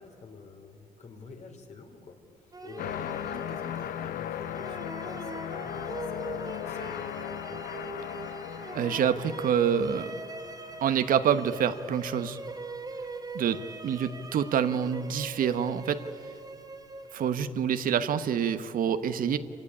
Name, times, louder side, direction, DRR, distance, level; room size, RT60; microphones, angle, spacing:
voice 1, 0.0-3.1 3.3-7.6 13.5-13.7, left 4 dB, 50° left, 4 dB, 3.8 m, -48 dB
sound 1, 2.5-17.6, right 2 dB, 25° right, 2.3 m, -42 dB
sound 2, 2.8-11.9 12.5-12.6, left 11 dB, 75° left, 0.6 m, -38 dB
voice 2, 8.7-10.1 10.8-12.4 13.3-13.6 13.8-16.0 17.1-19.4, right 8 dB, 70° right, 11 dB, 1.1 m, -26 dB
27.0 x 16.0 x 9.9 m, 2.5 s
cardioid pair, 85°, 15 cm